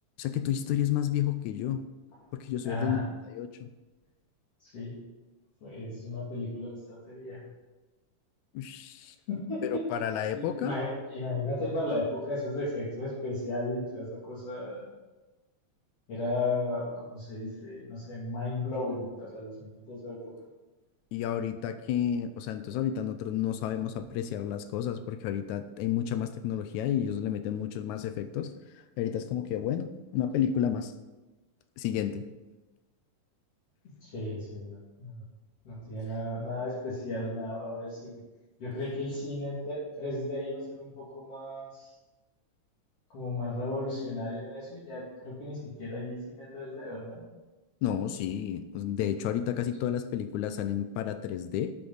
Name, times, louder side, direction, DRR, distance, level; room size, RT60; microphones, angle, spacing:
voice 1, 0.2-1.9 2.3-3.7 8.5-9.2 9.6-10.8 21.1-28.5 29.0-30.9 31.8-32.2 47.8-51.7, left 10 dB, 80° left, 10 dB, 1.9 m, -31 dB
voice 2, 2.6-3.1 4.6-4.9 5.6-7.5 9.3-9.8 10.3-14.9 16.1-20.2 34.0-35.2 35.7-38.2 38.6-41.9 43.1-47.2, left 2 dB, 50° left, -9 dB, 3.5 m, -35 dB
13.0 x 8.5 x 4.0 m, 1.1 s
omnidirectional pair, 3.7 m